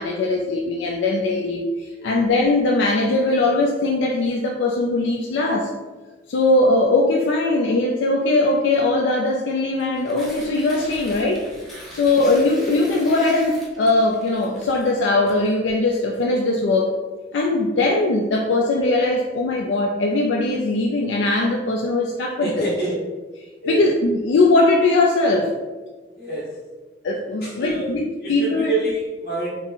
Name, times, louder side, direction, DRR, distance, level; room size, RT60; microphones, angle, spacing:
voice 1, 0.0-5.7 6.3-11.5 11.9-17.0 17.3-22.7 23.7-25.5 27.0-28.7, left 2 dB, 90° left, 1 dB, 0.3 m, -20 dB
Tearing, 9.7-16.0, equal, ahead, 0.6 m, -41 dB
voice 2, 22.4-22.9 23.6-23.8 26.1-26.6 27.4-27.9 28.2-29.5, right 2 dB, 55° left, -6 dB, 1.3 m, -27 dB
3.7 x 2.0 x 3.9 m, 1.3 s
head